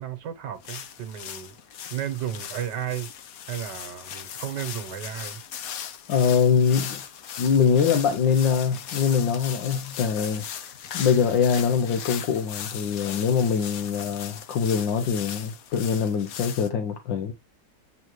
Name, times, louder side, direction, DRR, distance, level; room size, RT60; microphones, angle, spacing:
voice 1, 0.0-1.5 1.9-3.1 3.5-5.4, right 10 dB, 70° right, 1.6 m, -33 dB
sound 1, 0.6-16.7, left 8 dB, 60° left, 1.1 m, -38 dB
voice 2, 6.1-7.0 7.4-10.5 10.9-17.3, left 6 dB, 85° left, 1.6 m, -23 dB
8.2 x 3.9 x 3.0 m
omnidirectional pair, 2.0 m